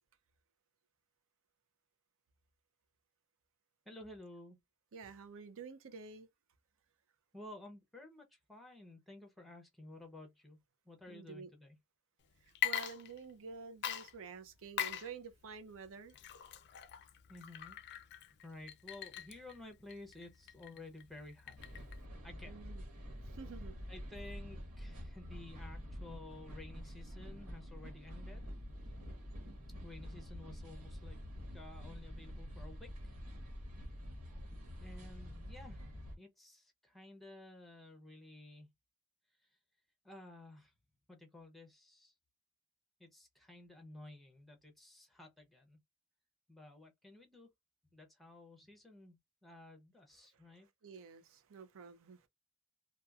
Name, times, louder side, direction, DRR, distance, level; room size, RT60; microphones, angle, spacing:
voice 1, 3.9-4.6 7.3-10.6 10.8-11.8 17.3-17.8 18.4-21.8 22.2-22.7 23.1-23.3 23.9-28.5 29.8-31.2 31.5-33.1 34.8-35.8 36.2-38.7 39.4-39.5 40.0-40.7 41.1-42.1 43.0-45.8 46.5-47.5 47.9-50.7, left 2 dB, ahead, 0.6 m, -53 dB
voice 2, 4.9-6.3 11.1-11.5 12.4-16.2 22.5-22.8 23.2-23.7 50.3-52.3, right 5 dB, 60° right, 0.5 m, -50 dB
Water / Liquid, 12.5-13.5 13.8-22.1, left 10 dB, 50° left, 0.4 m, -42 dB
sound 1, 21.6-36.2, equal, 90° right, 1.3 m, -47 dB
2.8 x 2.2 x 2.3 m
head